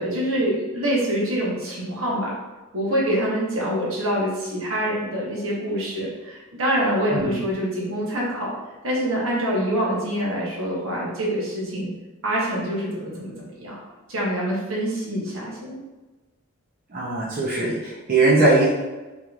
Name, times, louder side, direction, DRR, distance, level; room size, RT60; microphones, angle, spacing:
voice 1, 0.0-2.3 2.7-8.5 8.8-11.9 12.2-13.8 14.1-15.8, equal, 70° right, -4 dB, 1.0 m, -25 dB
voice 2, 16.9-18.7, right 2 dB, 45° right, -7 dB, 0.7 m, -20 dB
3.5 x 3.0 x 2.4 m, 1.2 s
head